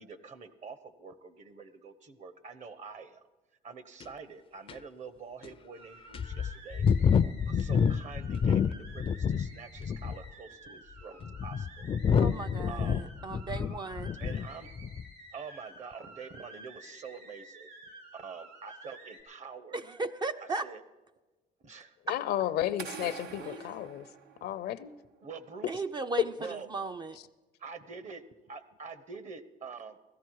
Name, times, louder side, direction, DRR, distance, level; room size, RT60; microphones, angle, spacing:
voice 1, 0.0-3.2 3.6-11.6 12.2-12.3 12.7-13.1 14.2-14.7 15.3-19.8 20.4-20.8 21.6-22.0 23.0-23.7 25.2-25.8 26.4-26.7 27.6-30.0, right 5 dB, 45° right, 1.0 m, -46 dB
sound 1, 4.0-4.1 4.7-4.8 5.4-5.5 6.1-9.5 9.8-10.3 11.0-14.5 14.8-15.1, left 7 dB, 35° left, 0.4 m, -28 dB
sound 2, 5.7-19.2, right 2 dB, 70° right, 3.4 m, -52 dB
voice 2, 12.2-14.1 19.7-20.6 25.7-27.2, right 3 dB, 25° right, 0.4 m, -36 dB
voice 3, 22.1-24.0 24.4-24.9, left 12 dB, 70° left, 0.6 m, -33 dB
sound 3, 22.8-24.9, right 7 dB, 85° right, 0.8 m, -45 dB
16.5 x 13.5 x 4.7 m
cardioid pair, 110°, 17 cm